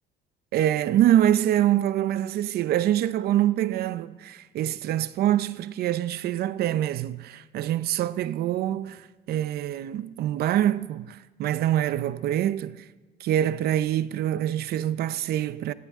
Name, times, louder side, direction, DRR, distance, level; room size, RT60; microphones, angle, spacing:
voice 1, 0.5-12.9 13.2-15.7, right 12 dB, 70° right, 0.7 m, -25 dB
19.0 x 16.5 x 3.7 m
cardioid pair, 110°, 17 cm